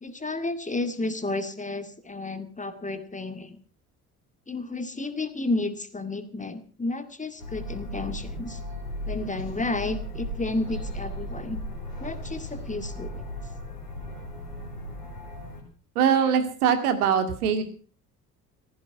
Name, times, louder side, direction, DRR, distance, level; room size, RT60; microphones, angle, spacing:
voice 1, 0.0-3.6 4.5-8.6 9.1-11.6 12.0-13.2, left 2 dB, 15° left, 10 dB, 2.2 m, -32 dB
sound 1, 7.4-15.6, left 1 dB, 85° left, 3.9 m, -36 dB
voice 2, 16.0-17.6, right 7 dB, 75° right, 8 dB, 2.3 m, -22 dB
16.0 x 15.0 x 5.8 m, 0.40 s
figure-of-eight pair, 50°, 45 cm